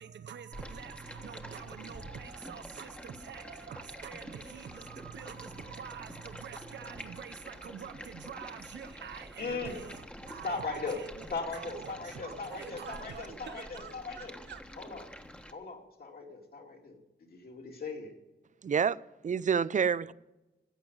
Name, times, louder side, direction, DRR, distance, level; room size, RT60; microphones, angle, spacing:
voice 1, 0.0-11.3 11.5-14.6, right 8 dB, 90° right, 0.8 m, -46 dB
Stream, 0.5-15.5, equal, 5° left, 1.3 m, -47 dB
voice 2, 9.4-9.8 10.4-11.0 11.3-14.4 14.8-15.1 15.5-18.1, left 4 dB, 60° left, 2.7 m, -38 dB
voice 3, 18.6-20.1, right 7 dB, 45° right, 0.4 m, -28 dB
15.0 x 8.0 x 9.2 m
wide cardioid pair, 100°, 18 cm